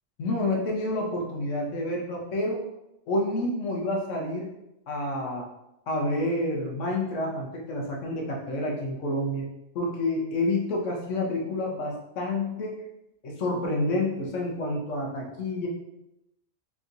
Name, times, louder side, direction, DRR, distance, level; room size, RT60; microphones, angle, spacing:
voice 1, 0.2-2.6 3.1-4.5 4.9-5.5 5.9-9.5 9.7-12.8 13.2-15.7, left 1 dB, 80° left, -1 dB, 1.2 m, -29 dB
4.1 x 3.6 x 2.5 m, 0.89 s
omnidirectional pair, 1.3 m